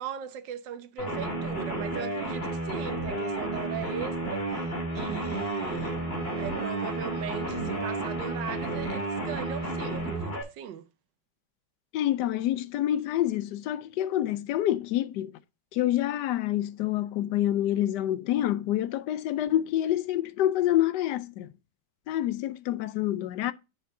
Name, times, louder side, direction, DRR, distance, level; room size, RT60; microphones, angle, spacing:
voice 1, 0.0-6.0 6.4-10.9, right 9 dB, 90° right, 1.5 m, -39 dB
sound 1, 1.0-10.4, right 2 dB, 35° left, 2.4 m, -32 dB
Trumpet, 4.9-10.2, right 2 dB, 15° left, 1.4 m, -50 dB
voice 2, 11.9-15.3 15.7-21.5 22.1-23.5, left 13 dB, 75° left, 1.1 m, -27 dB
10.0 x 5.8 x 2.6 m
omnidirectional pair, 1.9 m